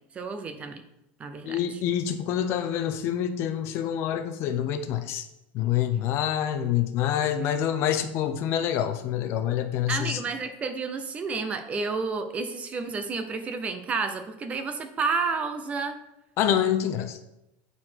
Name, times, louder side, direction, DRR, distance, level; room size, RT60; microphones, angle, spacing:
voice 1, 0.1-0.8 1.2-1.8 9.9-15.9, right 4 dB, 20° right, 8 dB, 0.6 m, -30 dB
voice 2, 1.5-5.2 5.5-10.2 16.4-17.2, left 10 dB, 45° left, 8 dB, 0.7 m, -26 dB
9.5 x 4.2 x 4.5 m, 0.88 s
supercardioid pair, 155°, 6 cm